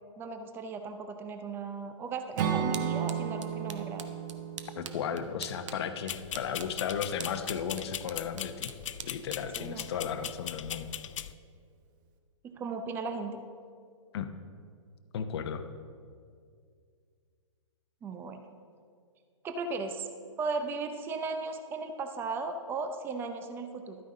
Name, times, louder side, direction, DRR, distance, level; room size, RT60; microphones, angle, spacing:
voice 1, 0.2-4.0 9.6-9.8 12.4-13.4 18.0-18.4 19.4-20.1 20.4-24.0, right 4 dB, 15° right, 7 dB, 0.5 m, -36 dB
sound 1, 2.1-10.8, right 7 dB, 70° right, 0.8 m, -48 dB
Acoustic guitar / Strum, 2.4-6.5, right 8 dB, 40° right, 0.9 m, -34 dB
voice 2, 4.8-8.7 9.0-10.9 14.1-14.3 15.1-15.6, left 7 dB, 55° left, 9 dB, 0.8 m, -35 dB
sound 2, 6.1-11.3, left 10 dB, 70° left, 0.4 m, -40 dB
12.5 x 9.1 x 3.8 m, 2.2 s
hypercardioid pair, 140°, 16 cm